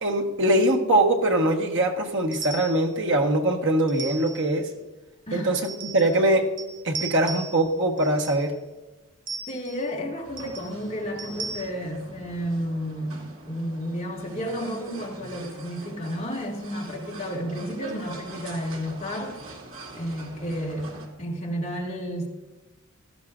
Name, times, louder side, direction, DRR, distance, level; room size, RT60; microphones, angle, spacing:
voice 1, 0.0-4.7 5.3-6.5 6.8-8.5, right 1 dB, 65° right, 2 dB, 1.5 m, -22 dB
sound 1, 2.3-2.9 3.9-4.5 5.6-6.3 6.6-7.7 8.0-8.5 9.3-9.9 10.4-10.7 11.2-11.6, right 4 dB, 40° right, 0.7 m, -37 dB
voice 2, 9.5-19.4 19.9-22.3, equal, 30° left, -3 dB, 2.2 m, -32 dB
sound 2, 10.2-21.1, right 2 dB, 85° right, 2.4 m, -44 dB
17.0 x 12.5 x 2.6 m, 1.2 s
head